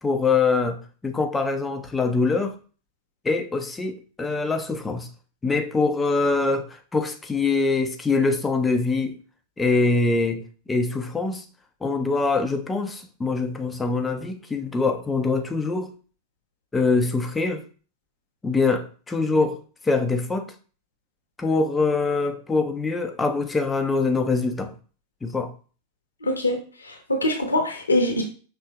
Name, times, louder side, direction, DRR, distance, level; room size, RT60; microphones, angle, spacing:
voice 1, 0.0-2.5 3.2-5.1 5.4-9.2 9.6-11.4 11.8-15.9 16.7-17.6 18.4-20.5 21.4-24.7 25.2-25.5, left 3 dB, 10° left, 6 dB, 0.5 m, -24 dB
voice 2, 26.2-26.6 26.8-28.2, left 1 dB, 80° left, 3 dB, 0.8 m, -23 dB
5.5 x 3.0 x 2.3 m, 0.38 s
figure-of-eight pair, 90°, 0 cm